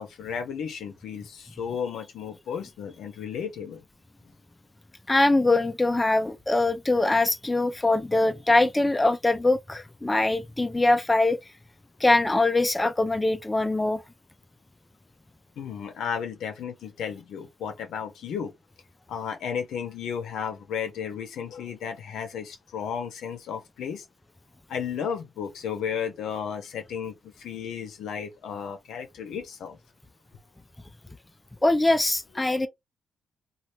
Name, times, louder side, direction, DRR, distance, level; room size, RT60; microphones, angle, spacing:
voice 1, 0.0-3.8 15.6-18.5 19.1-24.0 24.7-29.8 32.6-32.7, left 7 dB, 75° left, 0.7 m, -34 dB
voice 2, 5.1-11.4 12.0-14.0 31.6-32.7, left 2 dB, 15° left, 0.5 m, -22 dB
2.8 x 2.4 x 3.1 m
supercardioid pair, 55°, 0 cm